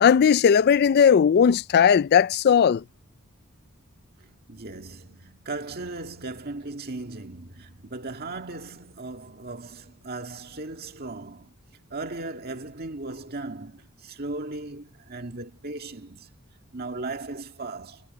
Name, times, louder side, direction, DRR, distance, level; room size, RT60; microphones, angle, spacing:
voice 1, 0.0-2.8, left 7 dB, 45° left, 0.3 m, -17 dB
voice 2, 4.5-11.5 11.9-16.3 16.7-18.0, right 2 dB, 45° right, 2.1 m, -37 dB
head